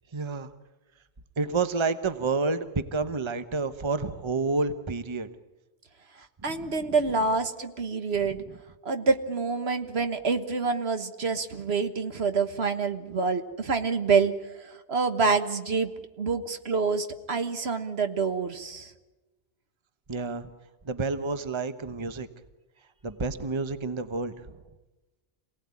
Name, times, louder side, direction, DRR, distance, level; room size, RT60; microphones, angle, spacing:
voice 1, 0.1-0.5 1.4-5.3 6.5-6.9 20.1-20.5 20.8-22.3 23.0-24.6, right 3 dB, 25° right, 11 dB, 1.0 m, -29 dB
voice 2, 6.4-8.4 8.8-14.3 14.6-15.9 16.2-18.9, right 4 dB, 65° right, 8 dB, 1.7 m, -27 dB
27.5 x 18.0 x 9.7 m, 1.1 s
omnidirectional pair, 1.1 m